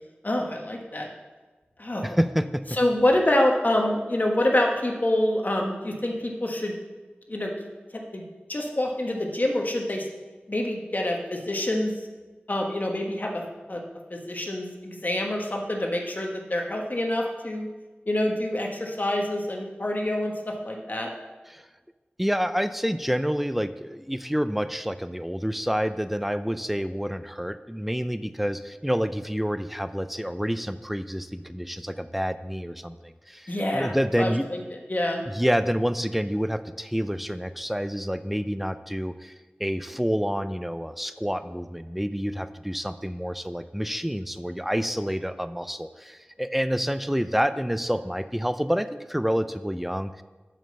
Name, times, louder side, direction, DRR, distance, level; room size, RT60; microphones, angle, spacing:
voice 1, 0.2-1.1 1.8-2.2 2.7-6.7 7.3-7.5 7.9-8.2 8.5-10.1 10.5-12.0 12.5-13.4 13.7-13.8 14.1-17.7 18.1-21.1 33.5-34.6 34.9-35.2, left 1 dB, 45° left, 1 dB, 1.5 m, -26 dB
voice 2, 2.0-2.6 21.5-21.6 22.2-34.5 35.3-39.3 39.6-50.2, equal, 5° right, 12 dB, 0.5 m, -28 dB
7.4 x 5.3 x 6.9 m, 1.3 s
wide cardioid pair, 45°, 4 cm